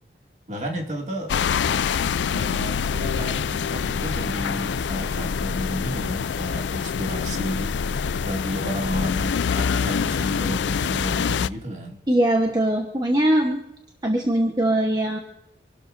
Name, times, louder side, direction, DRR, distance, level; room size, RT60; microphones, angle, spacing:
voice 1, 0.5-1.3 2.3-12.0, equal, 40° right, 1 dB, 2.3 m, -33 dB
sound 1, 1.3-11.5, left 6 dB, 80° left, 0.4 m, -25 dB
voice 2, 12.1-13.6 14.0-15.2, right 1 dB, 20° right, 1 dB, 1.2 m, -21 dB
27.0 x 12.5 x 2.7 m, 0.82 s
head